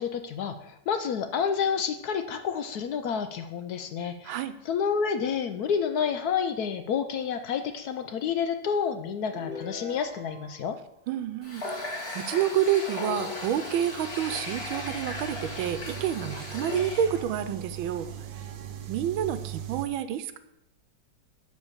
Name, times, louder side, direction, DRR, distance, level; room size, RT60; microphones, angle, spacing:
voice 1, 0.0-10.8, left 7 dB, 70° left, 8 dB, 0.9 m, -29 dB
sound 1, 9.2-10.7, left 4 dB, 5° right, 1.8 m, -41 dB
voice 2, 11.1-11.6 12.1-18.1 18.9-20.4, right 10 dB, 85° right, 12 dB, 1.5 m, -28 dB
Water tap faucet, 11.4-17.2, left 2 dB, 30° left, 1.9 m, -36 dB
sound 2, 13.2-19.9, right 10 dB, 65° right, 1.3 m, -40 dB
11.5 x 4.0 x 7.2 m, 0.85 s
omnidirectional pair, 2.2 m